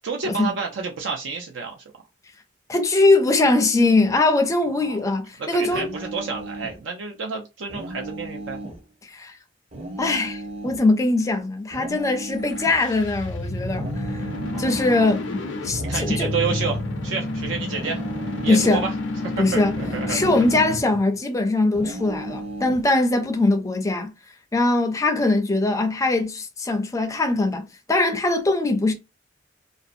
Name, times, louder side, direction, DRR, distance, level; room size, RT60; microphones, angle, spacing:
voice 1, 0.0-1.8 4.8-5.0 5.4-8.6 14.5-15.1 15.9-18.0 18.4-18.9 19.5-20.2, right 5 dB, 75° right, 0.5 m, -30 dB
voice 2, 2.7-5.9 9.1-9.4 10.0-13.9 14.6-16.3 18.5-18.8 19.4-19.7 20.1-24.1 24.5-28.9, left 2 dB, 15° left, 0.4 m, -21 dB
sound 1, 5.7-6.8 7.7-8.8 9.7-10.8 11.7-12.8 13.7-14.9 15.7-16.9 17.7-18.9 19.7-20.9 21.7-22.9, right 1 dB, 35° right, 0.7 m, -35 dB
sound 2, 12.4-21.0, left 2 dB, 70° left, 0.5 m, -30 dB
2.7 x 2.0 x 2.5 m
head